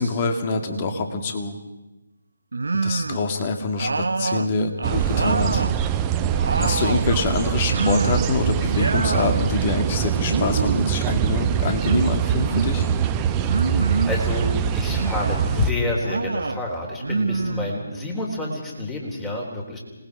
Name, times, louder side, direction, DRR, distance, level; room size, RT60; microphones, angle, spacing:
voice 1, 0.0-1.5 2.8-5.6 6.6-12.9, left 4 dB, 30° left, 5 dB, 2.3 m, -25 dB
sound 1, 2.5-3.3 3.8-5.8 6.1-7.1 7.7-8.4 8.6-9.4 10.2-11.0 11.8-12.7 13.5-14.2 14.9-15.5 16.0-16.6 17.0-18.1, right 3 dB, 70° right, 0.7 m, -26 dB
sound 2, 4.8-15.7, right 8 dB, 20° right, 0.8 m, -23 dB
voice 2, 13.7-19.8, left 2 dB, 10° left, 0 dB, 3.8 m, -28 dB
27.0 x 20.0 x 5.0 m, 1.0 s
figure-of-eight pair, 150°, 0 cm